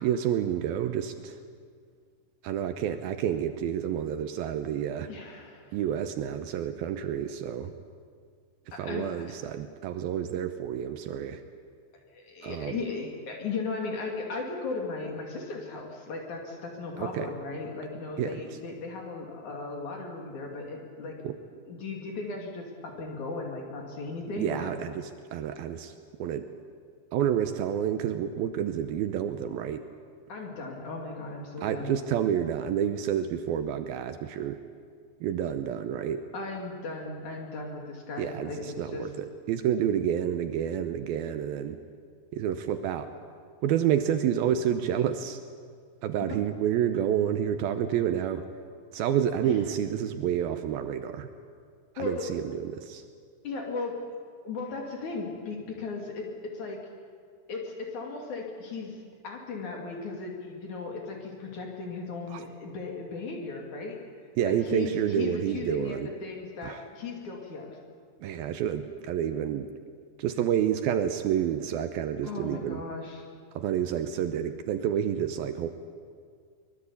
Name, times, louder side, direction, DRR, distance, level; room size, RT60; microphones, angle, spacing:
voice 1, 0.0-1.4 2.4-5.1 5.7-7.7 8.8-11.4 12.4-12.8 17.0-17.3 18.2-18.4 21.2-21.4 24.4-25.9 26.2-26.5 27.1-29.9 31.6-34.6 35.2-36.3 38.2-41.8 42.3-43.1 43.6-45.4 46.0-48.4 48.9-51.3 52.0-53.0 62.3-62.4 64.4-66.1 66.6-66.8 68.2-69.7 70.2-72.8 73.6-75.7, right 9 dB, 75° right, 8 dB, 2.5 m, -29 dB
voice 2, 5.1-5.8 8.7-9.3 12.1-21.2 21.7-24.7 30.3-32.0 36.3-39.1 52.0-52.3 53.4-54.0 54.4-56.8 57.5-64.0 64.4-67.8 72.2-73.2, left 3 dB, 50° left, 1 dB, 3.7 m, -36 dB
23.5 x 21.0 x 8.4 m, 2.1 s
omnidirectional pair, 4.7 m